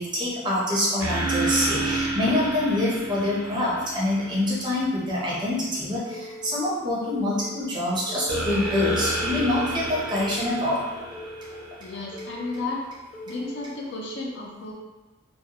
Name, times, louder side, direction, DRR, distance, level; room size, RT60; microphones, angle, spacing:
voice 1, 0.0-10.8, left 1 dB, 20° right, -6 dB, 0.5 m, -25 dB
sound 1, 1.0-4.7 8.3-12.2, right 2 dB, 70° right, 0.5 m, -30 dB
Telephone, 6.1-6.6 7.1-7.6 8.1-8.6 9.1-9.6 10.1-10.6 11.1-11.6 12.1-12.6 13.1-13.6, equal, 75° left, 0.9 m, -41 dB
voice 2, 11.8-12.8 13.3-14.7, left 3 dB, 55° left, -2 dB, 0.4 m, -33 dB
2.3 x 2.0 x 2.8 m, 1.2 s
head